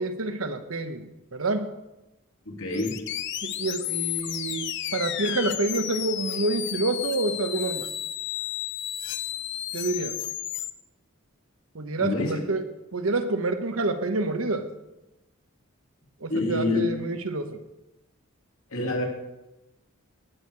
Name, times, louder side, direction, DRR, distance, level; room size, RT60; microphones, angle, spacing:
voice 1, 0.0-1.7 3.4-7.9 9.7-10.2 11.7-12.7 12.9-14.7 16.2-17.6, right 2 dB, 75° right, 8 dB, 1.1 m, -28 dB
voice 2, 2.5-3.0 12.0-12.3 16.3-16.8 18.7-19.0, left 2 dB, 75° left, -1 dB, 2.8 m, -27 dB
sound 1, 2.7-10.7, left 12 dB, 55° left, 0.6 m, -32 dB
18.5 x 6.4 x 4.7 m, 0.98 s
head